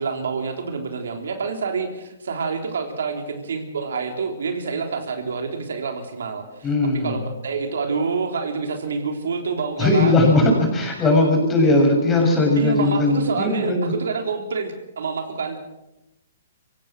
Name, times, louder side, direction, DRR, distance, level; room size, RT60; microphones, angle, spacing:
voice 1, 0.0-6.7 7.0-10.1 12.5-15.6, right 5 dB, 80° right, 4 dB, 3.6 m, -27 dB
voice 2, 6.6-7.2 9.8-13.9, left 2 dB, 15° left, 1 dB, 7.0 m, -18 dB
25.5 x 16.5 x 6.2 m, 0.93 s
hypercardioid pair, 150°, 0 cm